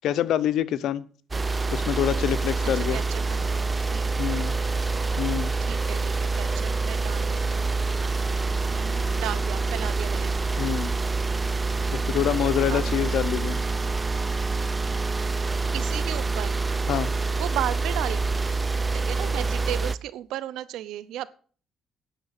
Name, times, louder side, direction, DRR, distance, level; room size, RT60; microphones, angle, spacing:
voice 1, 0.0-1.1 1.7-3.0 4.2-4.6 5.2-5.5 10.6-10.9 11.9-13.6 16.9-17.1, left 11 dB, 80° left, 16 dB, 0.7 m, -26 dB
sound 1, 1.3-20.0, right 3 dB, 20° right, 0.7 m, -26 dB
voice 2, 2.6-4.4 5.6-7.8 8.7-10.4 12.7-13.0 15.7-16.6 17.4-18.2 18.9-21.3, right 13 dB, 90° right, 17 dB, 0.8 m, -35 dB
10.5 x 6.5 x 8.3 m, 0.42 s
cardioid pair, 90°, 0 cm